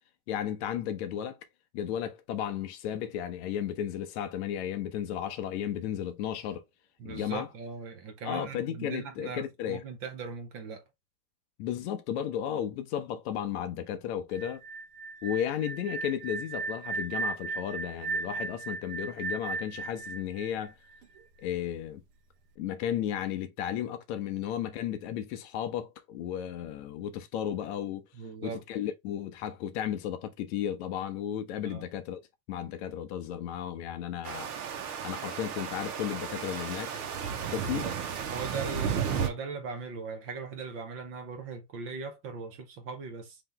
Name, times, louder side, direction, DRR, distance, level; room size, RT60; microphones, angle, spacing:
voice 1, 0.3-1.4 1.7-6.6 7.0-7.5 8.2-9.8 11.6-14.6 15.2-20.7 21.4-22.0 22.6-28.1 28.4-32.2 32.5-34.5 35.0-36.9 37.5-37.8, left 10 dB, 45° left, 0.6 m, -34 dB
voice 2, 7.0-10.8 28.1-28.6 31.6-31.8 37.8-38.0 38.3-43.4, right 4 dB, 30° right, 0.6 m, -39 dB
sound 1, 14.3-21.2, right 4 dB, 80° right, 0.9 m, -36 dB
sound 2, 34.2-39.3, right 7 dB, 65° right, 1.2 m, -33 dB
3.2 x 2.9 x 3.8 m
supercardioid pair, 150°, 47 cm